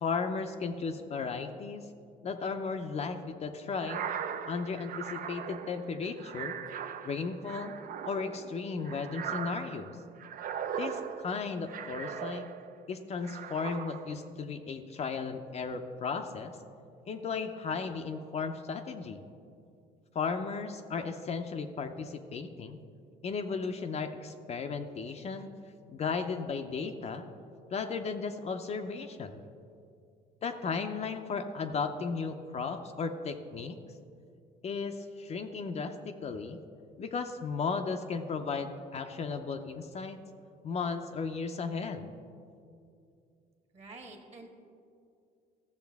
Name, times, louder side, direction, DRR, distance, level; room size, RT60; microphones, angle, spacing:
voice 1, 0.0-1.9 2.2-4.1 4.5-6.6 7.0-7.8 8.1-9.9 10.8-12.5 12.9-16.6 17.1-19.2 20.1-22.8 23.2-25.5 25.9-27.3 27.7-29.4 30.4-33.8 34.6-36.6 37.0-40.2 40.6-42.1, left 5 dB, 40° left, 6 dB, 0.5 m, -35 dB
sound 1, 3.7-12.8 13.2-14.3, right 8 dB, 55° right, 0.5 m, -39 dB
voice 2, 43.7-44.5, right 2 dB, 40° right, 3 dB, 1.5 m, -48 dB
14.0 x 7.1 x 3.5 m, 2.5 s
cardioid pair, 110°, 17 cm